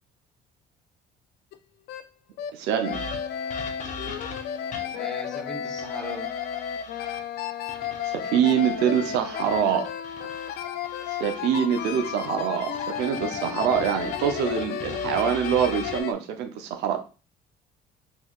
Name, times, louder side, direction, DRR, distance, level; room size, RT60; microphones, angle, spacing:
sound 1, 1.5-1.6 1.9-2.0 2.4-2.5 2.8-16.1, left 8 dB, 70° left, 0.4 m, -33 dB
voice 1, 2.5-3.0 8.1-9.8 11.2-17.0, right 9 dB, 90° right, 6 dB, 0.6 m, -25 dB
sound 2, 2.9-5.1 5.8-7.2 7.7-11.4 11.8-16.0, left 3 dB, 50° left, 0.8 m, -41 dB
voice 2, 4.8-6.3, equal, 5° left, 0 dB, 1.0 m, -39 dB
3.7 x 3.0 x 2.3 m, 0.34 s
cardioid pair, 110°, 17 cm